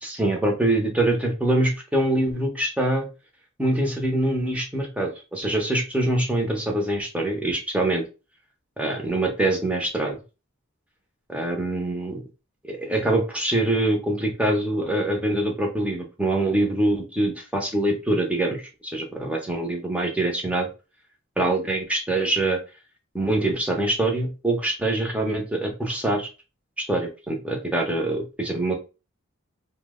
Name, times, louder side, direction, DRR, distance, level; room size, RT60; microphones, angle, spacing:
voice 1, 0.0-3.1 3.6-8.0 8.8-10.2 11.3-12.2 12.7-20.7 21.4-22.6 23.1-26.3 26.8-28.7, right 1 dB, 5° right, 1 dB, 0.6 m, -24 dB
2.7 x 2.1 x 3.5 m, 0.31 s
head